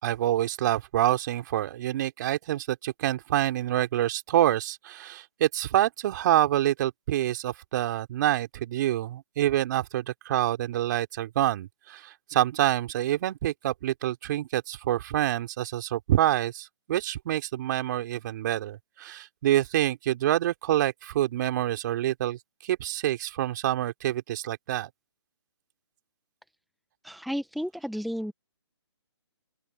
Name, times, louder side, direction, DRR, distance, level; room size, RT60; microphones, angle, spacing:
voice 1, 0.0-24.9, right 13 dB, 40° right, 3.2 m, -27 dB
voice 2, 27.0-28.3, equal, ahead, 1.2 m, -32 dB
open air
hypercardioid pair, 145°, 15 cm